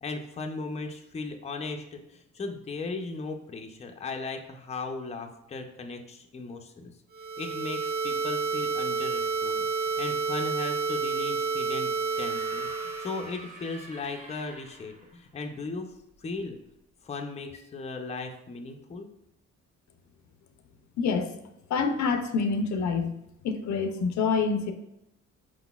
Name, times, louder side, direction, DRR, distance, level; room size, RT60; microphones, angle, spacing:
voice 1, 0.0-6.9 7.4-11.9 12.2-16.6 17.0-19.1, left 3 dB, 20° left, 4 dB, 0.5 m, -37 dB
sound 1, 7.1-13.3, right 4 dB, 80° right, 1.0 m, -30 dB
sound 2, 12.1-15.1 16.4-16.5, right 2 dB, 25° right, 1.2 m, -45 dB
voice 2, 21.0-21.3 21.7-23.1 23.4-24.7, left 5 dB, 65° left, 7 dB, 0.5 m, -26 dB
4.7 x 3.9 x 2.3 m, 0.84 s
cardioid pair, 90°, 30 cm